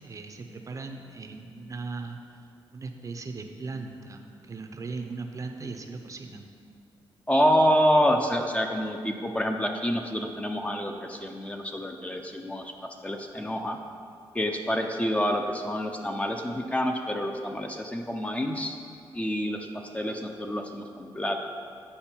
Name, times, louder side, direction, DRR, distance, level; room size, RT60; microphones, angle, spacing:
voice 1, 0.0-6.5, right 3 dB, 35° right, 4 dB, 0.6 m, -38 dB
voice 2, 7.3-12.7 13.0-13.8 14.3-18.8 19.1-21.4, equal, 15° left, 3 dB, 0.5 m, -27 dB
8.6 x 5.0 x 4.4 m, 2.3 s
cardioid pair, 105°, 9 cm